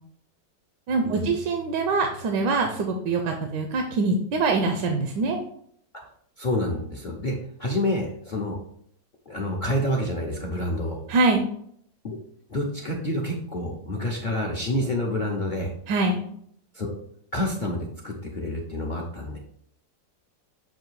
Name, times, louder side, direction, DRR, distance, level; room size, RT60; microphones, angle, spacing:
voice 1, 0.9-5.4 11.1-11.5 15.9-16.2, right 3 dB, 75° right, 4 dB, 1.3 m, -24 dB
voice 2, 6.4-8.6 9.3-11.0 12.0-12.2 12.5-15.7 16.7-16.9 17.3-19.4, left 1 dB, 50° left, 0 dB, 0.5 m, -28 dB
7.5 x 2.7 x 4.6 m, 0.66 s
omnidirectional pair, 2.0 m